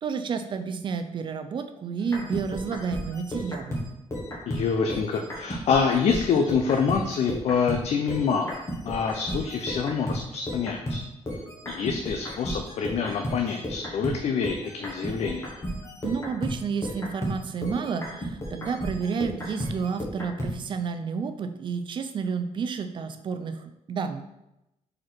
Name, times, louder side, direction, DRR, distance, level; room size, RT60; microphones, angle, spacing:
voice 1, 0.0-3.8 16.0-24.2, right 6 dB, 40° right, 8 dB, 0.5 m, -30 dB
sound 1, 2.0-7.8 8.1-20.5, equal, 25° left, 1.4 m, -34 dB
voice 2, 4.5-11.0 11.6-15.5, left 6 dB, 65° left, 4 dB, 0.5 m, -26 dB
5.0 x 4.3 x 4.4 m, 0.90 s
wide cardioid pair, 165°, 12 cm